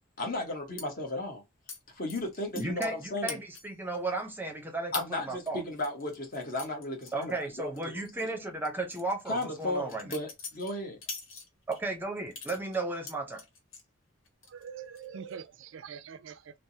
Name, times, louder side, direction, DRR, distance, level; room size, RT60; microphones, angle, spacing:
voice 1, 0.2-1.4 1.9-3.4 4.9-8.0 9.3-11.0, left 1 dB, 45° left, 1.1 m, -35 dB
sound 1, 0.8-0.9 1.7-1.8 2.1-3.0 3.3-3.8 4.2-4.3 4.9-5.1 5.5-7.8 8.0-8.2 8.6-11.8 12.3-13.8 14.2-14.7 14.9-15.3, left 5 dB, 80° left, 1.1 m, -43 dB
voice 2, 2.5-5.6 7.1-10.1 11.7-13.4, right 2 dB, 10° right, 0.6 m, -34 dB
voice 3, 14.5-16.6, right 7 dB, 65° right, 0.4 m, -44 dB
3.3 x 2.0 x 2.7 m
head